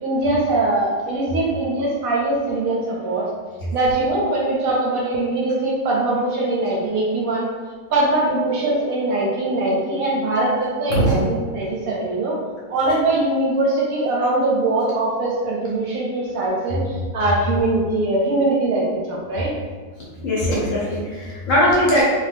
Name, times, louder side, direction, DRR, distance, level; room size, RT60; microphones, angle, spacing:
voice 1, 0.0-3.3 3.7-7.5 7.9-12.4 12.7-19.5, right 2 dB, 70° right, -4 dB, 0.9 m, -22 dB
voice 2, 20.2-22.0, equal, 65° left, -5 dB, 0.8 m, -19 dB
2.6 x 2.2 x 3.3 m, 1.5 s
omnidirectional pair, 1.7 m